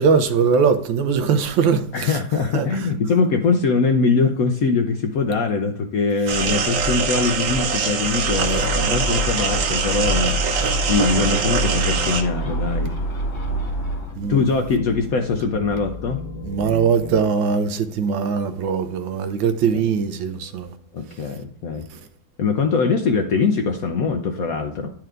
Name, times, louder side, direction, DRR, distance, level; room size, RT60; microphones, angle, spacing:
voice 1, 0.0-2.2 2.5-2.9 14.2-14.4 16.4-20.7 21.9-22.0, right 6 dB, 85° right, 1.4 m, -21 dB
voice 2, 1.9-10.5 10.9-12.9 14.3-16.2 20.9-21.9 22.4-24.9, left 4 dB, 70° left, 0.8 m, -22 dB
sound 1, 6.3-12.2, right 5 dB, 60° right, 0.9 m, -23 dB
Gull seagull, 8.2-14.1, right 1 dB, 40° left, 0.7 m, -27 dB
sound 2, 9.1-17.2, equal, 85° left, 1.7 m, -35 dB
10.5 x 4.5 x 2.4 m
omnidirectional pair, 2.1 m